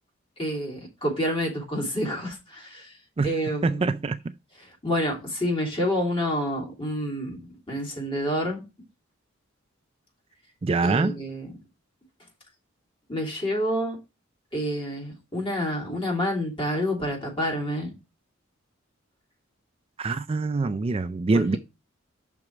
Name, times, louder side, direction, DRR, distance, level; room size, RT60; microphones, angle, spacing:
voice 1, 0.4-3.0 3.2-3.9 4.6-8.6 10.8-11.5 13.1-14.0 14.5-17.9 21.3-21.6, equal, 25° left, 3.1 m, -28 dB
voice 2, 3.6-4.2 10.6-11.2 20.0-21.6, right 3 dB, 30° right, 0.3 m, -24 dB
5.9 x 4.6 x 6.4 m
head